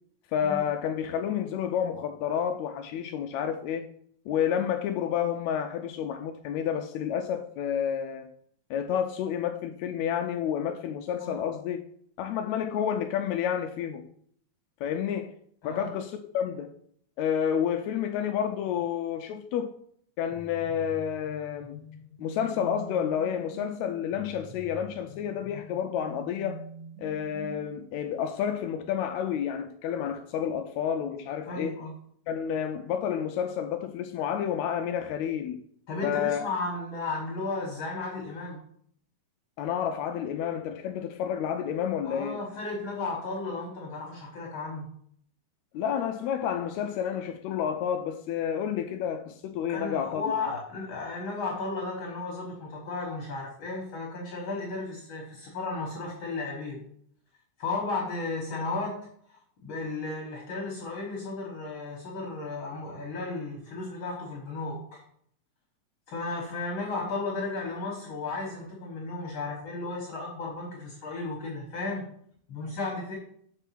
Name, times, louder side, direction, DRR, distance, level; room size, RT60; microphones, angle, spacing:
voice 1, 0.3-3.9 4.3-8.3 8.7-11.8 12.2-14.1 14.8-15.3 15.6-16.7 17.2-19.7 20.2-21.7 22.2-26.6 27.0-31.8 32.3-35.6 36.0-36.4 39.6-42.5 45.7-50.2, left 8 dB, 85° left, 1.6 m, -30 dB
sound 1, 20.3-27.9, right 2 dB, 50° right, 2.6 m, -46 dB
voice 2, 31.5-31.9 35.9-38.6 42.1-44.9 49.7-56.8 57.6-59.0 59.3-65.0 66.1-72.0 72.5-73.2, left 3 dB, 50° left, 1.7 m, -34 dB
6.8 x 4.5 x 5.8 m
omnidirectional pair, 3.7 m